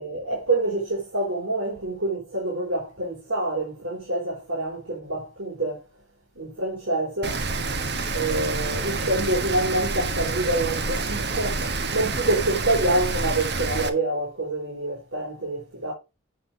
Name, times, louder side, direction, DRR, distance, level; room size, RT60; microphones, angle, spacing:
voice 1, 0.0-5.8 6.3-7.4 8.1-15.9, right 2 dB, 85° right, 4.5 m, -27 dB
Rain, 7.2-13.9, right 3 dB, 55° right, 1.3 m, -28 dB
8.4 x 7.8 x 3.8 m
head